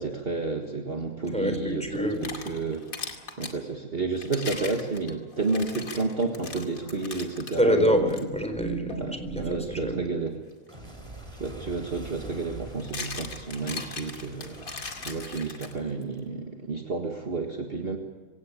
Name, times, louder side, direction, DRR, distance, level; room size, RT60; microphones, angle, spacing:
voice 1, 0.0-2.8 3.4-8.0 9.0-10.4 11.4-18.0, right 3 dB, 40° right, 2 dB, 1.9 m, -31 dB
Clock, 1.0-4.0 4.3-7.3 7.5-16.4, right 1 dB, 20° right, 3.7 m, -46 dB
voice 2, 1.3-2.3 7.6-10.0, equal, 5° left, 6 dB, 4.2 m, -26 dB
sound 1, 1.9-3.6 4.2-7.6 8.1-8.2 8.9-9.1 11.2-11.3 12.5-16.0, left 4 dB, 70° left, 2.9 m, -39 dB
25.5 x 18.0 x 8.4 m, 1.4 s
omnidirectional pair, 1.6 m